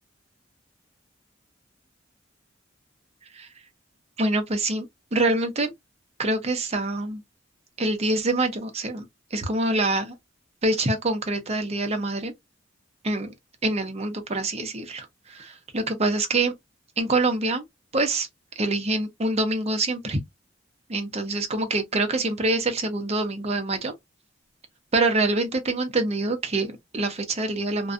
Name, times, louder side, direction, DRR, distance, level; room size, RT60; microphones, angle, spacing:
voice 1, 4.2-5.7 6.2-7.2 7.8-9.0 9.3-10.1 10.6-12.3 13.0-13.3 13.6-16.5 17.0-17.6 17.9-18.3 18.6-20.2 20.9-23.9 24.9-27.9, right 2 dB, 35° right, 0.6 m, -25 dB
2.5 x 2.1 x 2.4 m
head